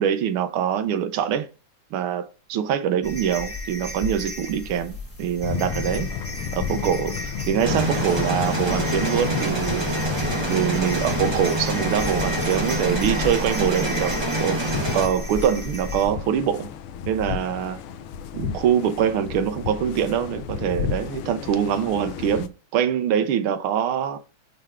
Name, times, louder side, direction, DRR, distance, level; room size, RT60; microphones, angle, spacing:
voice 1, 0.0-1.5 1.9-6.1 6.5-9.9 10.5-14.1 14.4-14.6 14.9-16.7 17.1-17.8 18.3-24.2, right 9 dB, 75° right, 1.6 m, -24 dB
sound 1, 3.0-16.1, left 1 dB, 10° left, 0.7 m, -33 dB
sound 2, 5.4-22.5, left 8 dB, 80° left, 1.6 m, -33 dB
sound 3, 7.6-15.1, right 1 dB, 15° right, 0.9 m, -26 dB
9.0 x 3.3 x 3.6 m
omnidirectional pair, 2.4 m